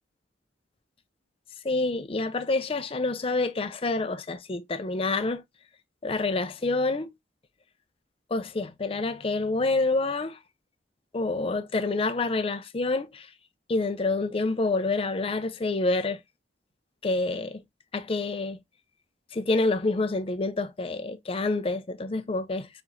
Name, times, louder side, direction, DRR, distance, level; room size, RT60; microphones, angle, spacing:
voice 1, 1.6-5.4 6.0-7.1 8.3-10.4 11.1-13.3 13.7-16.2 17.0-17.6 17.9-18.6 19.3-22.7, left 3 dB, 30° left, 0.5 m, -27 dB
4.5 x 4.3 x 2.5 m
head